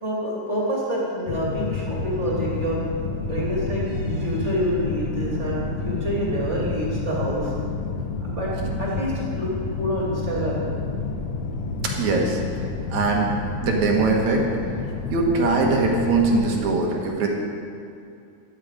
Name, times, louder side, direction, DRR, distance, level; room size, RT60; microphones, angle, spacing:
voice 1, 0.0-2.9 3.2-7.5 8.3-8.5 8.8-10.7, equal, 25° right, -5 dB, 2.5 m, -27 dB
sound 1, 1.3-16.6, left 4 dB, 70° left, 1.9 m, -29 dB
voice 2, 11.8-12.4 12.9-13.3 13.6-14.4 15.1-17.3, right 3 dB, 75° right, 0 dB, 2.7 m, -21 dB
12.5 x 10.5 x 5.0 m, 2.5 s
omnidirectional pair, 3.3 m